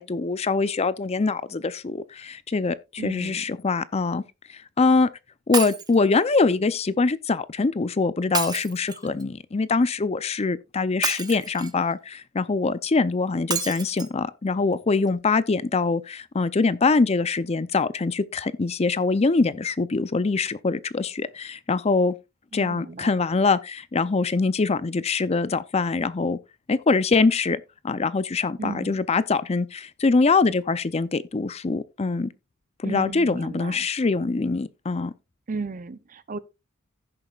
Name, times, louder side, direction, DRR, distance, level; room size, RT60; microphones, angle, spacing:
voice 1, 0.0-4.2 4.8-5.1 5.5-22.1 22.5-26.4 26.7-32.3 32.8-35.1, left 4 dB, 30° left, 0.5 m, -23 dB
voice 2, 3.0-3.4 22.5-23.1 28.6-29.0 32.8-33.9 35.5-36.4, right 4 dB, 40° right, 0.6 m, -35 dB
Shatter, 5.5-6.0 8.3-9.2 11.0-11.8 13.5-14.1 14.7-14.8 15.1-15.2, right 5 dB, 20° right, 0.9 m, -30 dB
16.0 x 6.9 x 2.4 m
head